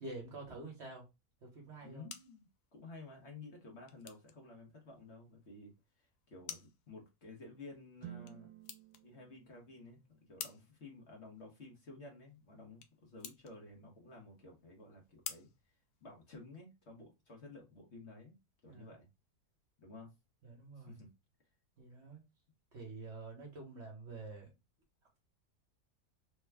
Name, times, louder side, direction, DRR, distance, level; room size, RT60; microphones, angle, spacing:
voice 1, 0.0-1.0 1.4-2.0 18.7-18.9 20.4-21.0 21.8-22.2 22.7-24.5, right 3 dB, 50° right, 1.1 m, -48 dB
sound 1, 1.6-16.6, left 9 dB, 90° left, 1.1 m, -54 dB
voice 2, 1.8-5.7 6.0-8.5 9.0-10.0 10.3-15.5 16.0-18.3 18.6-19.1 19.8-20.1 20.8-21.1, left 3 dB, 50° left, 1.1 m, -53 dB
sound 2, 8.0-12.1, right 11 dB, 80° right, 1.1 m, -55 dB
3.3 x 2.1 x 3.3 m
omnidirectional pair, 1.6 m